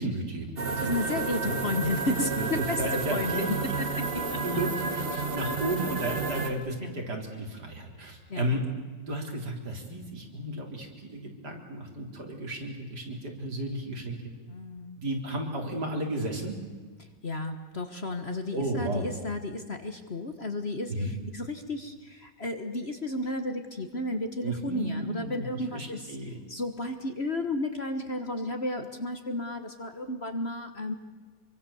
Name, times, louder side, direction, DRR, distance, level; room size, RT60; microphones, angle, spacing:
voice 1, 0.0-1.6 2.4-3.5 4.4-8.6 9.1-14.2 15.0-16.6 18.5-19.1 20.9-21.1 24.4-26.4, right 1 dB, 65° right, 1 dB, 4.2 m, -33 dB
sound 1, 0.6-6.5, right 4 dB, 35° right, 1.7 m, -31 dB
voice 2, 0.8-3.8 4.3-4.4 6.8-6.9 8.3-8.5 14.5-15.0 17.2-21.9 22.4-26.0 26.5-30.9, left 2 dB, 40° left, 7 dB, 1.6 m, -33 dB
26.5 x 24.0 x 7.2 m, 1.4 s
omnidirectional pair, 1.9 m